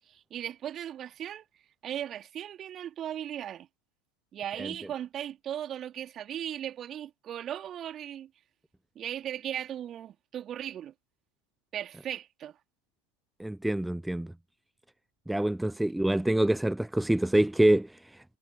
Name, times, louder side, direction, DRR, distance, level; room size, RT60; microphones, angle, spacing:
voice 1, 0.1-1.4 1.8-3.7 4.3-8.3 8.9-10.9 11.7-12.6, right 10 dB, 30° right, 3.1 m, -37 dB
voice 2, 13.4-14.3 15.3-18.2, right 1 dB, 5° right, 0.3 m, -26 dB
figure-of-eight pair, 90°, 0 cm